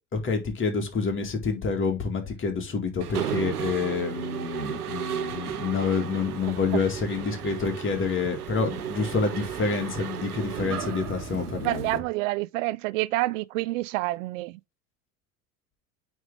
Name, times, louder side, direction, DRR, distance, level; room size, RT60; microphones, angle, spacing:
voice 1, 0.1-12.0, left 4 dB, 25° left, 2.1 m, -28 dB
Mechanisms, 3.0-12.0, right 9 dB, 80° right, 0.9 m, -34 dB
voice 2, 11.6-14.6, right 19 dB, 60° right, 0.6 m, -28 dB
9.0 x 3.5 x 3.6 m
figure-of-eight pair, 75°, 44 cm